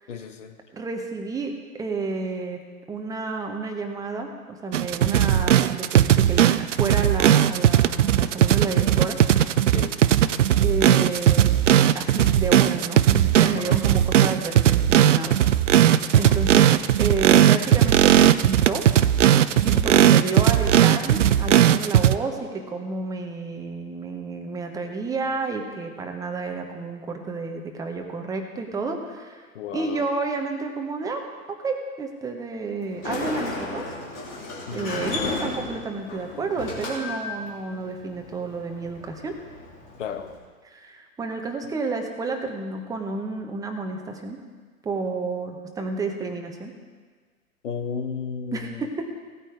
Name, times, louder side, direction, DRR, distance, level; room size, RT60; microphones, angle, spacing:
voice 1, 0.1-0.6 9.7-9.9 13.5-13.8 16.2-16.4 19.9-20.1 29.5-30.1 34.7-35.0 40.0-40.3 47.6-48.9, left 7 dB, 55° left, 7 dB, 1.4 m, -34 dB
voice 2, 0.7-2.6 2.9-9.2 10.6-11.6 11.9-15.4 16.2-16.7 17.0-18.8 19.6-29.4 29.7-33.8 34.7-39.3 40.6-44.4 44.8-46.7 48.5-49.1, right 3 dB, 10° right, 3 dB, 1.0 m, -30 dB
sound 1, 4.7-22.2, right 11 dB, 55° right, 0.6 m, -18 dB
Sliding door, 32.8-40.4, left 3 dB, 30° left, 3.1 m, -34 dB
16.5 x 8.9 x 4.7 m, 1.5 s
figure-of-eight pair, 110°, 43 cm